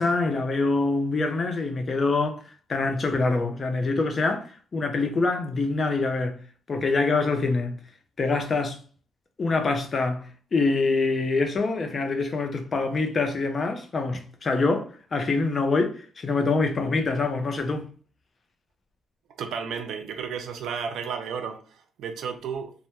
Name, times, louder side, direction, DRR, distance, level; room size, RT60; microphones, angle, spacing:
voice 1, 0.0-2.4 2.7-4.4 4.7-6.4 6.7-7.8 8.2-8.8 9.4-17.9, left 3 dB, 40° left, 0.4 m, -25 dB
voice 2, 19.4-22.7, right 6 dB, 75° right, 0.4 m, -33 dB
2.1 x 2.0 x 2.9 m
cardioid pair, 90°, 0 cm